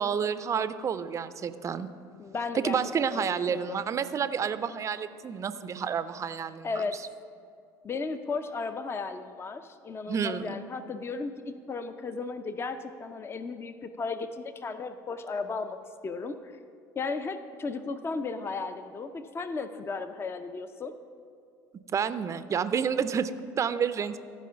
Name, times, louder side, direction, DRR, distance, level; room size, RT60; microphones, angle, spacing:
voice 1, 0.0-1.9 2.5-6.7 10.1-10.6 21.9-24.2, right 7 dB, 30° right, 13 dB, 0.5 m, -29 dB
voice 2, 2.2-2.8 3.1-3.8 6.6-7.0 7.8-15.8 16.0-16.5 17.0-20.9, left 4 dB, 25° left, 10 dB, 0.5 m, -35 dB
14.0 x 4.9 x 5.6 m, 2.3 s
hypercardioid pair, 65°, 10 cm